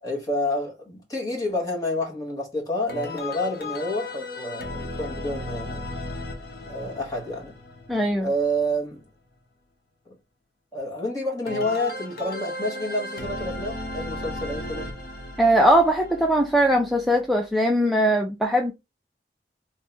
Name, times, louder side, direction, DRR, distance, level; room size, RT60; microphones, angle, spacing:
voice 1, 0.0-5.8 6.6-7.5 8.2-9.0 10.7-14.9, left 1 dB, 20° left, 1.4 m, -29 dB
sound 1, 2.9-8.7 11.5-17.4, left 1 dB, 60° left, 1.0 m, -36 dB
voice 2, 7.9-8.3 15.4-18.7, right 1 dB, ahead, 0.4 m, -20 dB
3.5 x 2.8 x 3.3 m
head